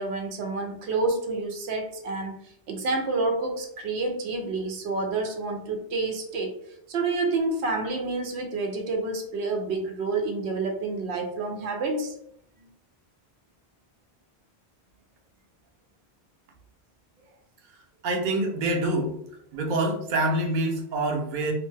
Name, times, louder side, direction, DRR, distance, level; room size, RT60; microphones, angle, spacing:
voice 1, 0.0-2.4 2.7-6.5 6.9-12.1, right 3 dB, 85° right, 3 dB, 0.9 m, -28 dB
voice 2, 18.0-19.1 19.5-21.5, right 2 dB, 55° right, 2 dB, 0.7 m, -26 dB
2.6 x 2.2 x 3.1 m, 0.70 s
omnidirectional pair, 1.1 m